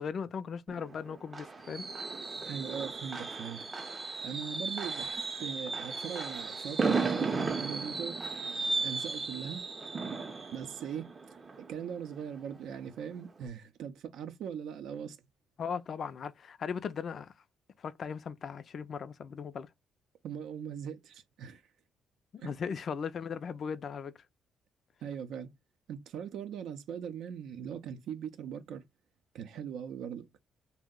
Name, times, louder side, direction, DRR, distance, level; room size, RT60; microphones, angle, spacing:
voice 1, 0.0-1.9 15.6-17.3 17.8-19.7 22.3-24.1, left 6 dB, 55° left, 0.3 m, -38 dB
Fireworks, 0.7-12.4 12.7-13.0 13.3-13.4, right 4 dB, 35° right, 0.6 m, -35 dB
voice 2, 2.4-8.2 8.8-9.7 10.5-11.4 11.7-15.2 20.2-21.6 22.4-22.5 25.0-25.6 25.9-28.8 29.3-30.3, right 8 dB, 80° right, 0.5 m, -40 dB
2.7 x 2.0 x 3.6 m
cardioid pair, 90°, 0 cm